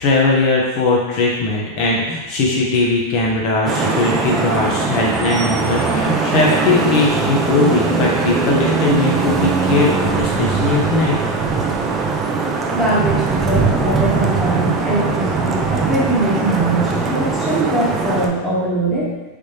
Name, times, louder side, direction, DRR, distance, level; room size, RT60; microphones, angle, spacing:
voice 1, 0.0-11.2, left 3 dB, 50° left, -2 dB, 0.7 m, -19 dB
Vehicle horn car horn honking / Traffic noise roadway noise, 3.7-18.3, right 4 dB, 20° right, 0.4 m, -20 dB
voice 2, 12.7-19.2, right 1 dB, ahead, -8 dB, 1.0 m, -21 dB
3.3 x 2.7 x 3.2 m, 1.1 s
supercardioid pair, 140°, 0 cm